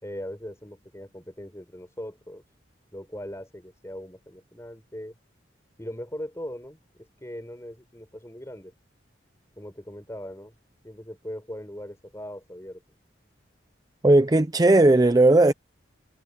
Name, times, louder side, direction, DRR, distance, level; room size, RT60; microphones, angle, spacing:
voice 1, 0.0-2.4 2.9-5.2 5.8-8.7 9.6-10.5 10.8-12.8, equal, 15° left, 4.8 m, -39 dB
voice 2, 14.0-15.5, right 2 dB, 20° right, 0.5 m, -17 dB
head